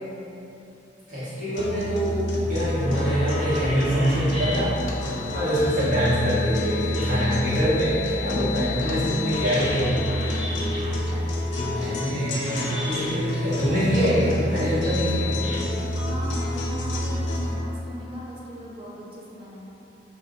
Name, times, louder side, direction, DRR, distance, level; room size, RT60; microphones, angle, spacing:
voice 1, 1.1-4.7 5.0-10.1 11.6-15.3, equal, 45° right, -12 dB, 1.2 m, -25 dB
sound 1, 1.5-17.5, left 1 dB, 85° left, 0.4 m, -28 dB
sound 2, 2.8-15.6, left 4 dB, 5° right, 0.9 m, -35 dB
voice 2, 8.2-9.4 15.0-15.4 15.9-19.6, equal, 30° right, -4 dB, 0.5 m, -39 dB
2.4 x 2.2 x 3.7 m, 2.9 s
head